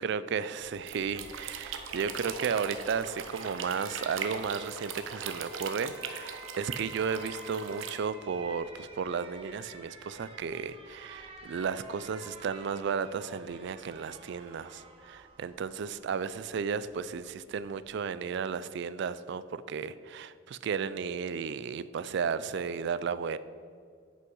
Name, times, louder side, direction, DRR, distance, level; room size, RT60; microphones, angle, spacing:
voice 1, 0.0-23.4, right 6 dB, 60° right, 15 dB, 0.3 m, -34 dB
Alarm, 0.6-17.8, right 2 dB, 30° right, 1.2 m, -51 dB
sound 1, 0.8-7.9, right 6 dB, 80° right, 0.8 m, -40 dB
9.8 x 5.5 x 5.5 m, 2.1 s
head